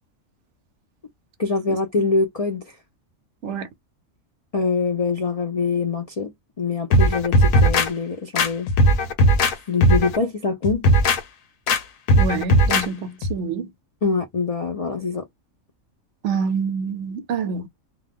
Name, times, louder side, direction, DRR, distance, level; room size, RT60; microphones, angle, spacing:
voice 1, 1.4-2.6 4.5-6.3 6.6-8.7 9.7-10.9 14.0-15.2, left 4 dB, 60° left, 0.3 m, -24 dB
sound 1, 6.9-7.9 8.4-9.5 9.8-10.2 10.6-11.2 11.7-11.8 12.1-12.9 13.2-13.3, equal, 80° left, 1.0 m, -17 dB
voice 2, 12.2-13.7 16.2-17.7, right 5 dB, 70° right, 0.8 m, -26 dB
2.4 x 2.2 x 3.3 m
omnidirectional pair, 1.4 m